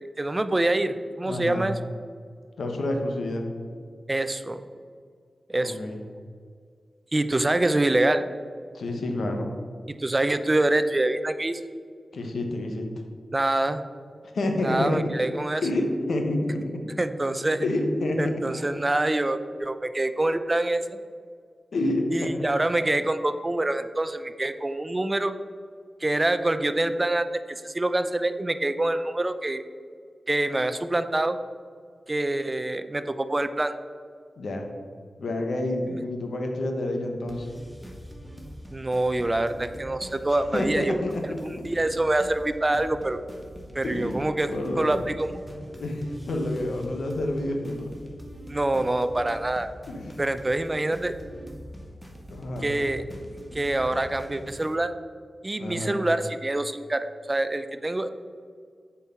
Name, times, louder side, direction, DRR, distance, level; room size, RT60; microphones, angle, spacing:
voice 1, 0.2-1.8 4.1-4.6 5.5-5.8 7.1-8.3 9.9-11.6 13.3-13.8 14.6-15.6 17.0-17.6 18.2-20.8 22.1-25.4 26.0-29.6 30.3-31.4 32.1-33.8 38.7-41.0 41.4-43.2 43.7-45.3 48.5-49.7 50.2-51.1 52.6-53.0 53.5-54.9 55.4-58.1, right 2 dB, 30° right, 11 dB, 0.5 m, -25 dB
voice 2, 1.2-1.7 2.6-3.5 5.6-6.0 8.7-9.6 12.1-12.8 14.3-15.1 15.6-16.8 17.6-18.3 21.7-22.4 34.4-34.7 35.2-37.5 40.5-41.4 43.8-45.0 45.7-47.9 49.9-50.2 52.3-52.7 55.6-56.0, left 1 dB, 85° left, 3 dB, 1.0 m, -28 dB
sound 1, 37.3-54.7, equal, ahead, 1.4 m, -43 dB
7.1 x 4.6 x 5.6 m, 2.1 s
cardioid pair, 45°, 0 cm